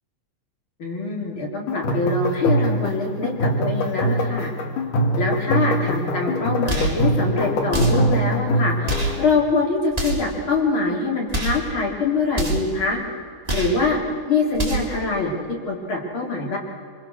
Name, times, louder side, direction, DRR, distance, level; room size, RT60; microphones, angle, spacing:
voice 1, 0.8-4.5 5.2-13.0 13.5-14.0 14.3-15.3 15.7-16.6, left 3 dB, 40° left, -2 dB, 4.3 m, -24 dB
sound 1, 1.7-9.3, equal, 85° left, 3.5 m, -23 dB
sound 2, 6.7-7.0 7.7-8.1 8.8-9.2 9.9-10.3 11.3-11.7 12.3-12.7 13.4-13.8 14.5-15.0, right 2 dB, 10° right, 2.6 m, -26 dB
25.5 x 24.0 x 6.5 m, 2.3 s
omnidirectional pair, 3.6 m